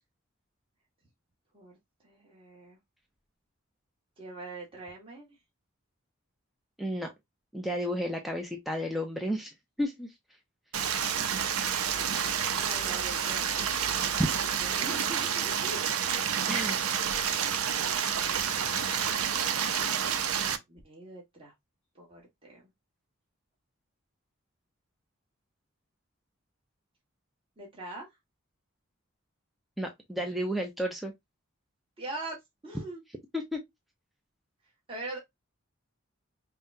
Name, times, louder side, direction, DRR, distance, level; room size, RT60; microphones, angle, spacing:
voice 1, 2.0-2.8 4.2-5.3 11.9-13.7 14.2-15.8 18.1-18.9 20.7-21.5 21.9-22.6 27.6-28.1 32.0-33.0 34.9-35.2, right 2 dB, 25° right, 1.4 m, -43 dB
voice 2, 6.8-7.1 7.5-10.1 16.5-16.8 29.8-31.1 33.3-33.6, equal, ahead, 0.5 m, -32 dB
Stream, 10.7-20.6, right 8 dB, 90° right, 0.6 m, -29 dB
5.4 x 2.2 x 2.7 m
head